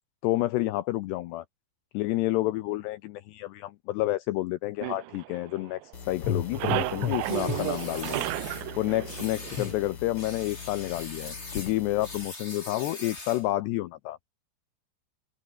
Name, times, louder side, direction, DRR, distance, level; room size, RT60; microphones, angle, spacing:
voice 1, 0.2-1.4 1.9-5.8 6.1-8.3 8.8-14.3, left 17 dB, 80° left, 2.6 m, -29 dB
sound 1, 4.8-6.0 6.3-10.0, right 21 dB, 80° right, 2.7 m, -33 dB
sound 2, 5.9-12.3, left 7 dB, 50° left, 1.7 m, -37 dB
sound 3, 7.2-8.7 9.1-9.8 10.2-13.5, left 2 dB, 15° left, 4.9 m, -42 dB
open air
omnidirectional pair, 5.5 m